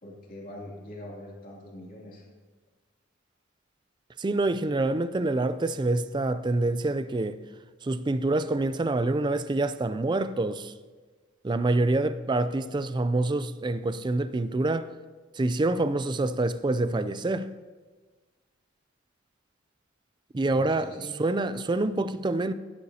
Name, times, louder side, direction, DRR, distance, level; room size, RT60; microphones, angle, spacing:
voice 1, 0.0-2.2 20.5-21.1, left 1 dB, 45° left, 2.7 m, -43 dB
voice 2, 4.2-7.4 7.8-10.7 11.4-14.9 15.4-17.5 20.3-22.5, right 2 dB, 20° right, 0.4 m, -26 dB
15.5 x 10.5 x 2.8 m
head